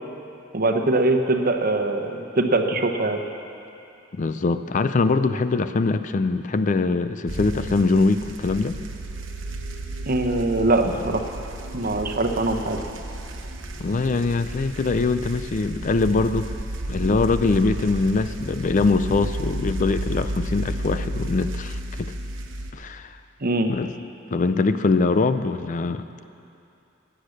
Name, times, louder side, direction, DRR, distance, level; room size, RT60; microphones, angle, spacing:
voice 1, 0.5-3.2 10.1-11.3 11.7-12.8 23.4-23.7, right 2 dB, 50° right, 5 dB, 1.0 m, -22 dB
voice 2, 4.1-8.8 13.8-16.5 16.9-22.1 22.7-23.2 23.7-26.1, left 3 dB, 40° left, 11 dB, 0.4 m, -23 dB
sound 1, 7.3-22.7, right 1 dB, 75° right, 1.1 m, -32 dB
16.5 x 10.0 x 6.5 m, 2.7 s
head